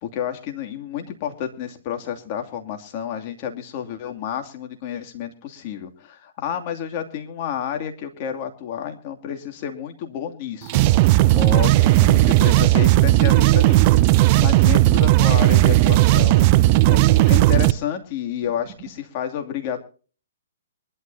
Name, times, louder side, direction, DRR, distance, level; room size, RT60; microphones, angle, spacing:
voice 1, 0.0-19.9, left 9 dB, 35° left, 4 dB, 2.7 m, -30 dB
sound 1, 10.7-17.7, right 16 dB, 35° right, 0.5 m, -15 dB
sound 2, 14.7-17.7 18.0-18.1 18.4-19.0, right 8 dB, 15° right, 6.8 m, -39 dB
23.5 x 12.5 x 2.8 m, 0.39 s
hypercardioid pair, 145°, 0 cm